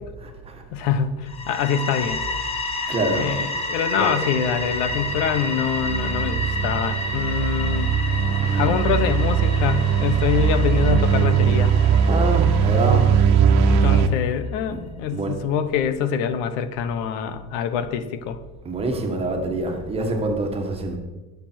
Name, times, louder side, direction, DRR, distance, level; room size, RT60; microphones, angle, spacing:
voice 1, 0.2-1.0 2.9-3.3 4.0-4.2 8.4-8.8 12.1-13.1 14.7-14.9 15.1-15.4 18.6-21.0, right 2 dB, 15° right, 3 dB, 1.4 m, -26 dB
voice 2, 0.7-2.2 3.1-7.9 8.5-11.8 13.1-13.2 13.6-18.4, left 8 dB, 90° left, 11 dB, 1.2 m, -25 dB
sound 1, 1.3-14.0, left 2 dB, 15° left, 0.8 m, -31 dB
sound 2, 4.4-14.1, right 7 dB, 70° right, 1.2 m, -20 dB
20.5 x 7.1 x 4.5 m, 1.2 s
cardioid pair, 180°, 34 cm